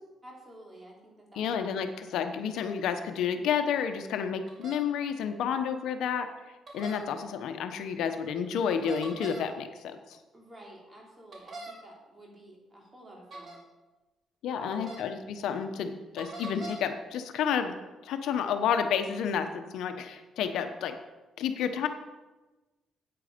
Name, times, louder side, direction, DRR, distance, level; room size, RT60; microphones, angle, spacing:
voice 1, 0.2-1.9 10.3-13.6 14.5-14.9, right 1 dB, 25° right, -2 dB, 3.6 m, -50 dB
voice 2, 1.3-6.3 6.7-10.2 14.4-17.8 18.0-21.0 21.4-21.9, left 7 dB, 80° left, 7 dB, 0.9 m, -30 dB
sound 1, 4.5-4.8 6.7-7.0 8.7-9.4 11.3-11.7 13.3-13.6 14.7-15.0 16.2-16.8, right 2 dB, 50° right, 3.1 m, -41 dB
9.3 x 8.7 x 5.2 m, 1.1 s
cardioid pair, 90°, 0 cm